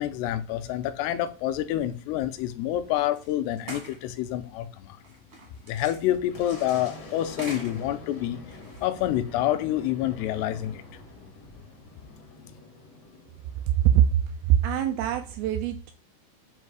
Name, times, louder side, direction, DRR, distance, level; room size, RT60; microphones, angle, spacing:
voice 1, 0.0-5.0 5.7-8.4 8.8-10.8, left 12 dB, 85° left, 2.6 m, -28 dB
sound 1, 3.2-3.3 3.6-4.1 5.0-7.9 8.5-9.2, right 2 dB, 50° right, 1.0 m, -43 dB
Boom, 5.5-14.9, left 2 dB, 70° left, 1.0 m, -47 dB
voice 2, 13.7-14.2 14.5-15.9, right 10 dB, 85° right, 2.2 m, -22 dB
7.8 x 2.7 x 4.7 m
omnidirectional pair, 4.7 m